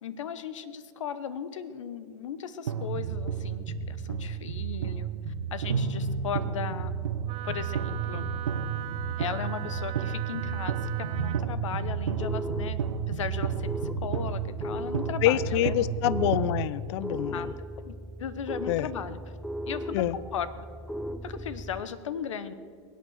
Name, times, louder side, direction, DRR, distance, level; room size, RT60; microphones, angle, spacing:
voice 1, 0.0-5.1 5.5-6.9 7.4-8.3 9.2-12.8 13.1-15.7 17.1-17.5 17.8-17.9 18.2-19.2 19.7-20.7 21.2-22.5, left 8 dB, 80° left, 14 dB, 0.9 m, -37 dB
sound 1, 2.7-16.7, right 7 dB, 85° right, 0.8 m, -31 dB
Wind instrument woodwind instrument, 7.3-11.5, right 15 dB, 40° right, 0.6 m, -40 dB
sound 2, 12.1-21.8, equal, 5° left, 0.7 m, -38 dB
voice 2, 15.2-17.4 18.7-18.9 19.9-20.1, left 13 dB, 65° left, 20 dB, 0.6 m, -26 dB
22.5 x 8.4 x 6.4 m, 2.2 s
hypercardioid pair, 95°, 16 cm